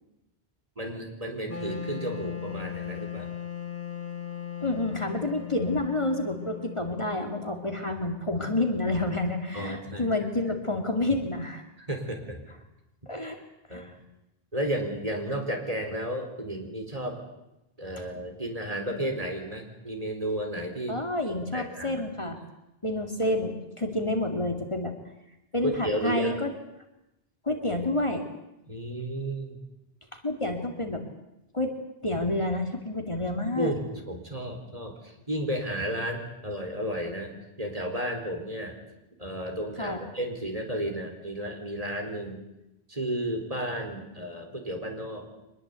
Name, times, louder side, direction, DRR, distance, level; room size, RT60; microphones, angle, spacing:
voice 1, 0.8-3.3 9.5-10.1 11.9-12.4 13.7-13.9 14.5-17.2 17.8-21.0 21.5-22.0 23.2-23.4 25.6-26.4 28.7-29.6 33.5-33.8 34.1-34.9 35.3-37.3 37.6-38.8 39.2-42.4 42.9-45.3, right 1 dB, 35° right, 3 dB, 4.2 m, -32 dB
Wind instrument woodwind instrument, 1.5-8.5, left 9 dB, 15° left, 1.8 m, -38 dB
voice 2, 4.6-11.6 13.1-13.4 13.7-13.9 20.9-22.4 22.8-24.9 25.5-26.5 27.4-28.2 30.1-31.0 31.5-31.7 32.0-33.7 39.8-40.1, left 2 dB, 30° left, 4 dB, 2.5 m, -29 dB
24.5 x 20.5 x 8.3 m, 0.92 s
omnidirectional pair, 1.0 m